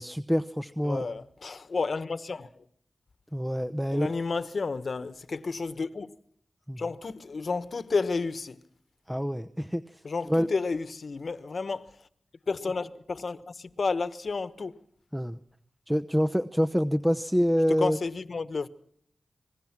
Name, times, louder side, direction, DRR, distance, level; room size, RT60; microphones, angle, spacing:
voice 1, 0.0-1.1 3.3-4.2 6.7-6.8 9.1-10.5 15.1-15.4 15.9-18.0, equal, 5° right, 0.8 m, -27 dB
voice 2, 0.8-2.5 3.9-6.1 6.8-8.6 10.0-11.9 12.5-14.7 17.8-18.7, left 4 dB, 65° left, 1.2 m, -31 dB
27.0 x 20.5 x 6.0 m
cardioid pair, 60°, 0 cm